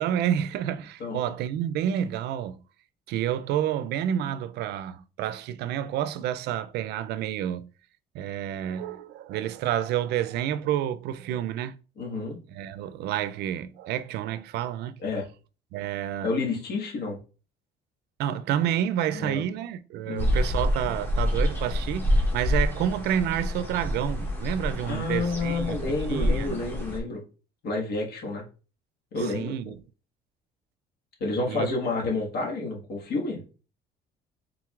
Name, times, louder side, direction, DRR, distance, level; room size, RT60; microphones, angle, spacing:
voice 1, 0.0-2.6 3.1-7.7 8.1-11.8 12.1-15.0 15.7-16.3 18.2-26.6 29.2-29.8 31.5-31.7, right 10 dB, 75° right, 0.4 m, -29 dB
voice 2, 1.0-1.3 12.0-12.4 15.0-15.3 16.2-17.2 19.1-19.4 20.0-20.4 24.8-27.2 27.6-28.4 29.1-29.7 31.2-33.4, left 3 dB, 70° left, 1.6 m, -30 dB
sound 1, 20.2-27.0, left 1 dB, 10° left, 1.2 m, -27 dB
4.5 x 3.8 x 2.4 m
cardioid pair, 110°, 17 cm